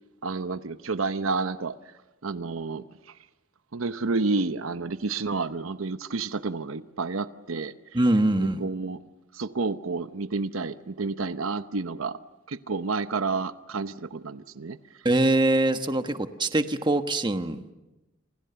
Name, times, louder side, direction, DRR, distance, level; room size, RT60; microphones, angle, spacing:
voice 1, 0.2-1.7 2.2-2.8 3.7-7.7 8.4-9.0 9.3-12.2 12.5-14.8, right 3 dB, 85° right, 12 dB, 0.9 m, -30 dB
voice 2, 7.9-8.6 15.0-17.6, right 1 dB, 25° right, 8 dB, 1.3 m, -23 dB
29.0 x 26.5 x 6.9 m, 1.0 s
head